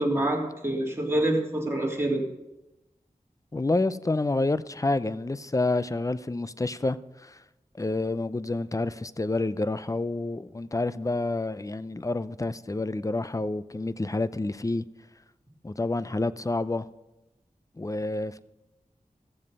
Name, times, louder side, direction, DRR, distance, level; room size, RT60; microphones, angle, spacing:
voice 1, 0.0-2.3, right 1 dB, 20° right, 3.3 m, -26 dB
voice 2, 3.5-7.4 7.7-14.8 15.6-16.9 17.7-18.4, left 2 dB, 25° left, 0.5 m, -28 dB
15.5 x 7.4 x 5.5 m
wide cardioid pair, 50°, 14 cm